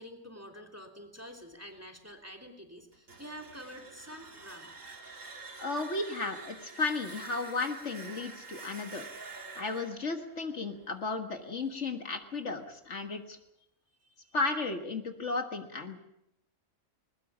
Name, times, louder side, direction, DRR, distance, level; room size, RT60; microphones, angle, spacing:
voice 1, 0.0-4.8 5.6-5.8 14.0-14.4, equal, 10° right, 4 dB, 3.0 m, -48 dB
sound 1, 2.9-11.7, right 4 dB, 75° right, 2.8 m, -48 dB
voice 2, 5.6-9.1 9.6-13.4 14.3-16.0, left 3 dB, 65° left, 6 dB, 1.9 m, -34 dB
21.0 x 20.5 x 7.3 m, 0.80 s
omnidirectional pair, 1.3 m